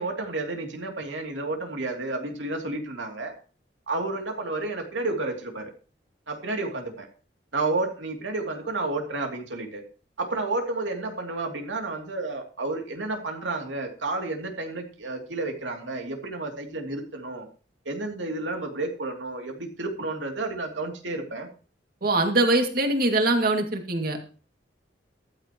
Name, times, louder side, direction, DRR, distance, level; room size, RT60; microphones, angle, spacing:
voice 1, 0.0-3.3 3.9-5.7 6.3-7.1 7.5-9.8 10.2-17.5 17.8-21.5, right 2 dB, 90° right, 3 dB, 2.9 m, -31 dB
voice 2, 22.0-24.2, right 2 dB, 50° right, 4 dB, 2.4 m, -22 dB
14.5 x 13.0 x 3.1 m, 0.37 s
head